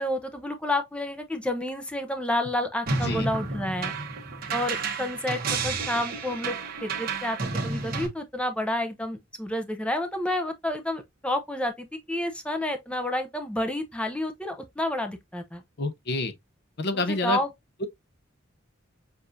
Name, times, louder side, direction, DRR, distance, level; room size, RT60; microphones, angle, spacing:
voice 1, 0.0-3.9 4.5-6.6 6.8-7.4 7.6-15.6 16.9-17.5, left 1 dB, 5° left, 0.6 m, -30 dB
sound 1, 2.9-8.1, right 4 dB, 45° right, 1.2 m, -31 dB
voice 2, 15.8-16.3 16.8-17.4, left 2 dB, 50° left, 0.7 m, -27 dB
6.8 x 2.5 x 2.6 m
head